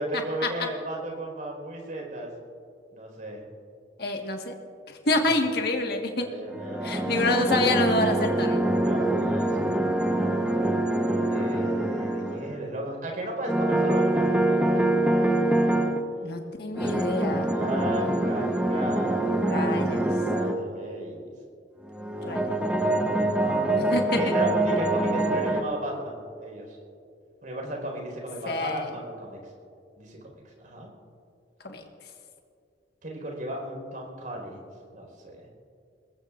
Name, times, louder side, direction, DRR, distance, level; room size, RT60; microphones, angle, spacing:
voice 1, 0.0-2.3 2.9-3.4 5.1-5.3 6.2-7.5 8.8-9.8 11.3-14.8 17.5-21.3 22.1-23.9 24.2-26.8 27.4-29.4 30.0-30.9 33.0-35.5, right 1 dB, 50° right, 0 dB, 4.7 m, -35 dB
voice 2, 4.0-4.5 4.9-6.2 6.8-8.6 16.2-17.5 19.5-20.1 22.2-22.5 23.8-24.2 28.4-28.9 31.6-31.8, left 2 dB, 60° left, 3 dB, 1.6 m, -27 dB
sound 1, 6.5-12.6 13.5-16.0 16.8-20.6 21.9-25.6, right 1 dB, 5° right, 1.0 m, -25 dB
25.0 x 20.5 x 2.6 m, 2.4 s
head